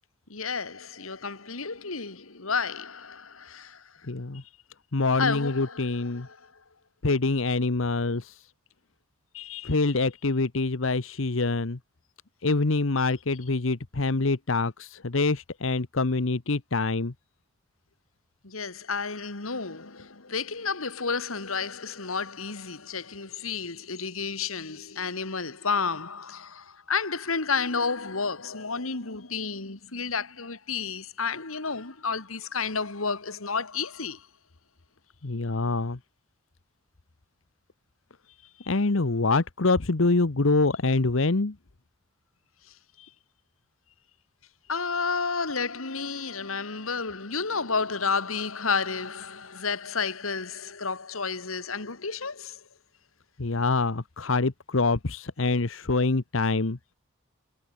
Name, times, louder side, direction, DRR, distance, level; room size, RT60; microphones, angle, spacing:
voice 1, 0.3-3.9 4.3-4.4 5.2-6.5 9.3-9.8 18.4-34.3 38.6-38.8 43.0-43.1 44.7-52.6, left 5 dB, 90° left, 2.4 m, -31 dB
voice 2, 4.1-4.4 4.9-6.3 7.0-8.4 9.6-11.8 12.4-17.1 35.2-36.0 38.7-41.5 53.4-56.8, left 3 dB, 70° left, 1.1 m, -25 dB
head